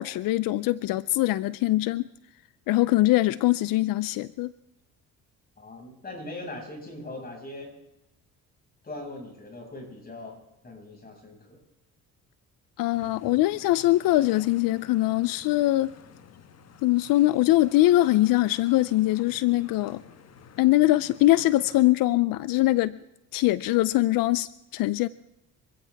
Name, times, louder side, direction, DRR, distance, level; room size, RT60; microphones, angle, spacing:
voice 1, 0.0-2.0 2.7-4.5 12.8-15.9 16.8-20.0 20.6-23.0 23.3-25.1, left 17 dB, 90° left, 17 dB, 0.6 m, -22 dB
voice 2, 5.6-7.7 8.8-11.6, left 2 dB, 25° left, 1 dB, 6.0 m, -40 dB
sound 1, 12.9-21.9, left 7 dB, 50° left, 1.3 m, -50 dB
26.0 x 15.5 x 3.5 m, 0.88 s
cardioid pair, 120°, 33 cm